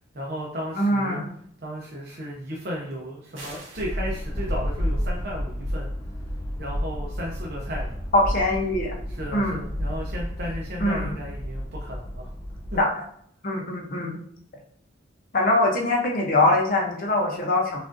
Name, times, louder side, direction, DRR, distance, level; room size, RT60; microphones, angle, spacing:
voice 1, 0.1-1.2 1.6-5.9 6.6-8.0 9.1-12.3 12.7-12.8, equal, 55° right, -3 dB, 0.7 m, -34 dB
voice 2, 0.8-1.3 8.1-8.9 9.3-9.6 10.8-11.1 12.8-12.9 13.4-14.2 15.3-17.8, left 1 dB, 45° left, 1 dB, 0.8 m, -22 dB
sound 1, 3.3-3.9, right 2 dB, 80° right, 1.6 m, -41 dB
sound 2, 3.8-12.8, equal, 15° left, 0.3 m, -31 dB
6.0 x 2.5 x 2.6 m, 0.64 s
head